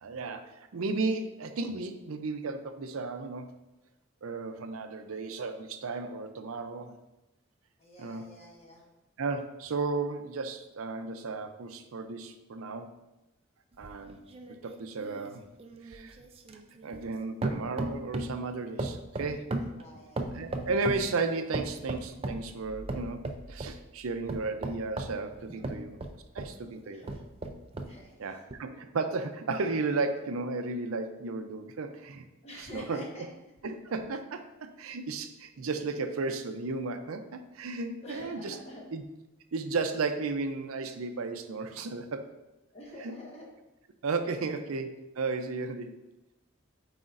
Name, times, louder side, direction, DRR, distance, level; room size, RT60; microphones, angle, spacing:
voice 1, 0.0-3.5 4.2-6.9 8.0-8.3 9.2-12.9 13.8-14.2 14.5-15.4 15.8-16.2 16.8-19.5 20.3-26.0 26.3-27.0 28.2-32.3 32.6-33.0 33.6-38.6 38.9-39.0 39.5-42.3 43.0-43.1 44.0-46.0, right 3 dB, 85° right, 8 dB, 0.5 m, -34 dB
voice 2, 7.8-8.9 19.6-20.3 25.5-25.7 26.8-27.2 27.8-28.4 32.4-33.2 38.0-38.9 42.7-43.5, equal, 30° left, -3 dB, 1.3 m, -47 dB
sound 1, 13.8-17.2 17.4-18.4 18.8-21.1 21.5-22.5 22.9-23.8 24.3-26.6 27.0-28.0 28.5-28.6, right 2 dB, 25° right, 0.4 m, -36 dB
sound 2, 22.3-25.0, right 1 dB, 75° left, 1.0 m, -50 dB
7.9 x 4.9 x 2.5 m, 0.96 s
head